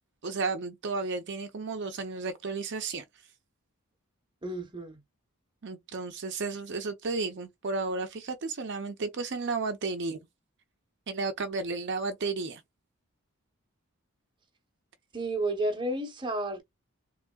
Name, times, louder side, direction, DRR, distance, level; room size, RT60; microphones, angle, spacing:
voice 1, 0.2-3.0 5.6-10.2 11.1-12.6, right 3 dB, 55° right, 0.5 m, -33 dB
voice 2, 4.4-5.0 15.1-16.6, right 1 dB, 20° right, 0.8 m, -31 dB
3.6 x 3.0 x 2.2 m
head